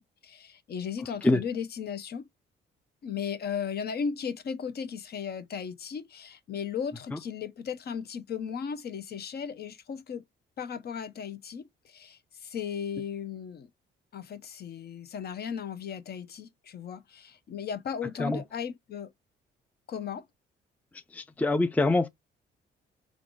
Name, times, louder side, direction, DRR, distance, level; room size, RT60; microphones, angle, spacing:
voice 1, 0.0-2.3 3.0-10.2 10.6-13.7 14.1-19.1 19.9-20.2, left 7 dB, 55° left, 0.7 m, -36 dB
voice 2, 21.1-22.1, left 2 dB, 10° left, 0.4 m, -25 dB
3.6 x 2.4 x 3.7 m
cardioid pair, 90°, 20 cm